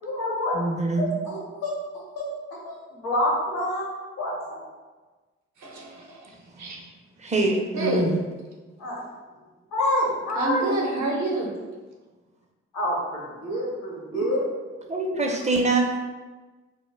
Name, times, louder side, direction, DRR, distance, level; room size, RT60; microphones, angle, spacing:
voice 1, 0.0-0.6 1.0-1.7 2.1-2.3 2.6-3.9 4.2-4.7 8.8-9.0 9.7-10.8 12.7-14.5, left 1 dB, 85° left, -4 dB, 0.8 m, -27 dB
voice 2, 0.5-1.1 6.5-6.8 7.2-8.1 14.1-14.2 14.8-16.0, right 2 dB, 20° right, 1 dB, 0.5 m, -24 dB
voice 3, 5.6-6.3 6.6-6.8 7.8-8.0 10.4-11.5, right 2 dB, 55° right, -1 dB, 0.7 m, -28 dB
2.1 x 2.1 x 3.1 m, 1.3 s
hypercardioid pair, 40°, 33 cm